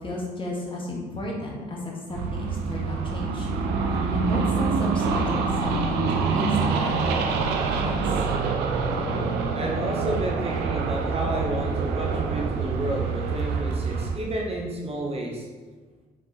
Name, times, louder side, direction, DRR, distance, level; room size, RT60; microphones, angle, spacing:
voice 1, 0.0-1.8 2.1-3.5 4.1-8.2, left 1 dB, 25° left, -3 dB, 2.0 m, -32 dB
sound 1, 2.1-14.2, right 5 dB, 60° right, 0.8 m, -26 dB
voice 2, 9.5-15.5, right 1 dB, 30° right, -1 dB, 1.4 m, -31 dB
7.3 x 5.4 x 4.1 m, 1.4 s
figure-of-eight pair, 45°, 19 cm